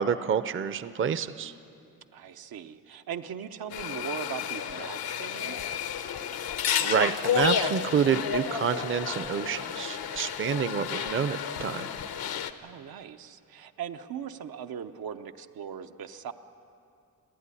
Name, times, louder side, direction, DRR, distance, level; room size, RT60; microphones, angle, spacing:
voice 1, 0.0-1.5 6.8-11.8, right 7 dB, 35° right, 13 dB, 0.5 m, -28 dB
voice 2, 2.1-5.6 12.6-16.3, right 8 dB, 85° right, 8 dB, 0.9 m, -39 dB
sound 1, 3.7-12.5, left 8 dB, 90° left, 1.0 m, -31 dB
30.0 x 11.0 x 9.8 m, 2.6 s
wide cardioid pair, 150°, 35 cm